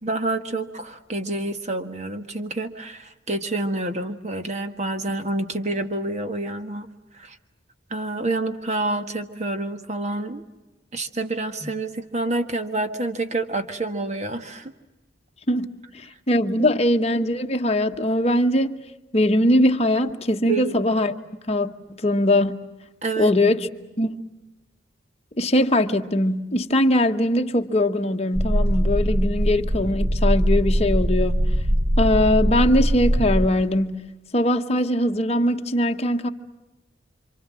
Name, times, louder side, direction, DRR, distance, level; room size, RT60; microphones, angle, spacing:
voice 1, 0.0-6.9 7.1-7.4 7.9-10.4 10.9-14.7 16.6-16.8 20.5-20.7 23.0-23.3, right 2 dB, 35° right, 1.6 m, -28 dB
voice 2, 16.3-18.8 19.1-21.1 21.5-21.7 22.0-22.6 23.2-23.7 24.0-24.2 25.4-31.4 32.0-34.0 34.3-36.3, left 1 dB, 35° left, 1.2 m, -21 dB
sound 1, 28.4-33.5, equal, 60° right, 1.2 m, -21 dB
28.0 x 26.0 x 7.6 m
head